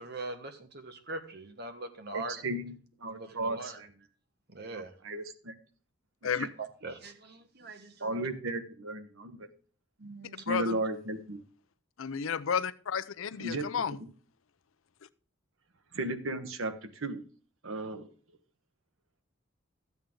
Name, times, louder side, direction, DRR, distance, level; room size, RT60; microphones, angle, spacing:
voice 1, 0.0-2.4 3.0-3.8 4.5-4.9 6.6-8.3 10.0-10.7, right 3 dB, 50° right, 1.4 m, -42 dB
voice 2, 2.1-2.8 3.0-3.9 4.7-5.5 6.4-6.5 8.0-9.4 10.5-11.4 13.4-13.7 14.0-14.1 15.9-17.2 17.6-18.1, right 2 dB, 85° right, 1.2 m, -35 dB
voice 3, 10.5-10.8 12.0-14.0, left 6 dB, 85° left, 0.6 m, -32 dB
12.5 x 8.4 x 3.7 m
head